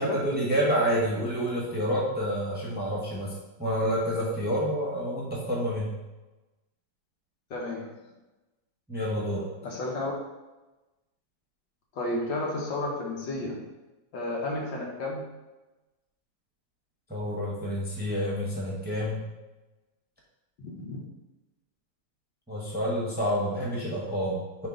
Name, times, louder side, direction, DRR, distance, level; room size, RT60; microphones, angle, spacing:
voice 1, 0.0-5.9 8.9-9.5 17.1-19.2 22.5-24.7, equal, 5° right, -4 dB, 1.1 m, -28 dB
voice 2, 7.5-8.0 9.6-10.1 11.9-13.7 14.1-15.3 20.6-21.1, left 2 dB, 70° left, -1 dB, 1.9 m, -32 dB
9.7 x 3.4 x 3.9 m, 1.1 s
omnidirectional pair, 2.1 m